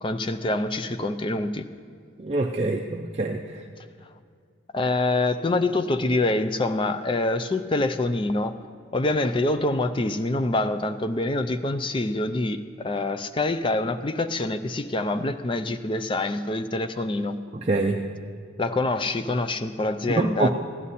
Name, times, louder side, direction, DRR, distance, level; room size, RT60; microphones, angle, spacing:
voice 1, 0.0-1.7 4.7-8.5 8.9-17.4 18.6-20.5, left 2 dB, 25° left, 9 dB, 0.4 m, -25 dB
voice 2, 2.2-3.6 17.5-18.0 20.1-20.5, right 2 dB, 30° right, 1 dB, 0.5 m, -25 dB
15.5 x 11.0 x 4.2 m, 2.2 s
head